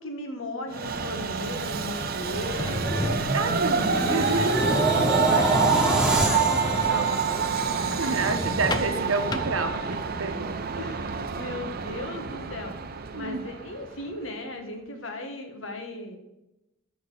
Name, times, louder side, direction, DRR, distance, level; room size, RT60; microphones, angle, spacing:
voice 1, 0.0-3.0 4.9-8.2 10.8-12.7 13.1-16.2, left 1 dB, 70° left, 5 dB, 1.3 m, -37 dB
Train, 0.7-14.2, right 6 dB, 50° right, 0.6 m, -28 dB
sound 1, 2.2-8.5 8.9-9.2, right 2 dB, 5° right, 1.5 m, -27 dB
sound 2, 2.4-10.2, left 2 dB, 20° left, 0.5 m, -32 dB
voice 2, 3.3-4.8 5.4-5.5 8.0-10.6 13.1-13.4, right 3 dB, 75° right, 6 dB, 0.9 m, -29 dB
6.2 x 5.1 x 6.9 m, 0.94 s
head